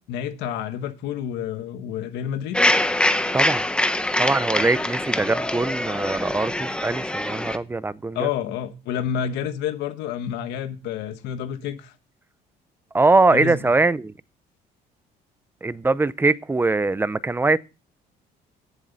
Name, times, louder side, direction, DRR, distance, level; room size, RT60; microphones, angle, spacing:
voice 1, 0.1-2.6 4.7-4.8 8.1-11.9 13.3-13.6, left 9 dB, 85° left, 1.3 m, -29 dB
sound 1, 2.5-7.6, left 1 dB, 5° left, 0.9 m, -24 dB
voice 2, 4.2-8.3 12.9-14.1 15.6-17.6, right 3 dB, 15° right, 0.5 m, -22 dB
15.5 x 7.5 x 4.0 m
cardioid pair, 110°, 17 cm